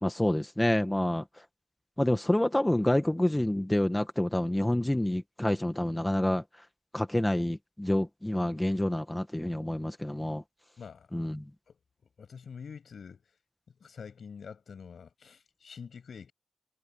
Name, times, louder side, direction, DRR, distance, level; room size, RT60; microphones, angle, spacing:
voice 1, 0.0-1.2 2.0-6.4 6.9-10.4 11.1-11.4, left 1 dB, 10° left, 1.3 m, -28 dB
voice 2, 10.8-11.1 11.7-11.8 12.2-13.3 13.8-16.3, left 6 dB, 65° left, 7.0 m, -46 dB
wide cardioid pair, 120°, 0 cm